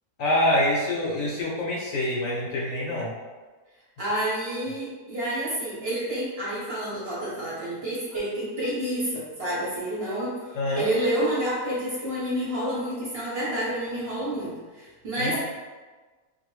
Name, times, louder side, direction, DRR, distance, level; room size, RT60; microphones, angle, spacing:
voice 1, 0.2-3.1 10.5-10.9 15.2-15.4, left 1 dB, 65° left, -4 dB, 1.0 m, -25 dB
voice 2, 4.0-10.3 10.7-15.4, right 1 dB, 50° right, -8 dB, 1.0 m, -29 dB
2.6 x 2.5 x 3.1 m, 1.3 s
omnidirectional pair, 1.6 m